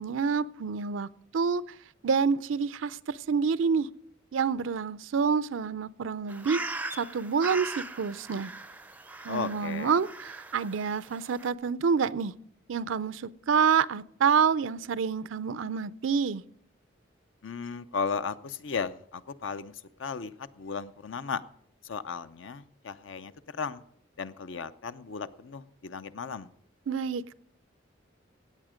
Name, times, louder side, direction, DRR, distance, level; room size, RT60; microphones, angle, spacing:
voice 1, 0.0-1.8 2.0-3.9 4.3-6.6 7.0-8.5 9.2-12.3 12.7-16.4 26.9-27.3, right 6 dB, 85° right, 0.4 m, -28 dB
sound 1, 6.3-11.5, right 2 dB, 10° right, 0.4 m, -40 dB
voice 2, 9.3-10.0 17.4-21.4 21.8-23.8 24.2-26.5, left 5 dB, 80° left, 0.7 m, -35 dB
16.5 x 8.8 x 5.0 m
head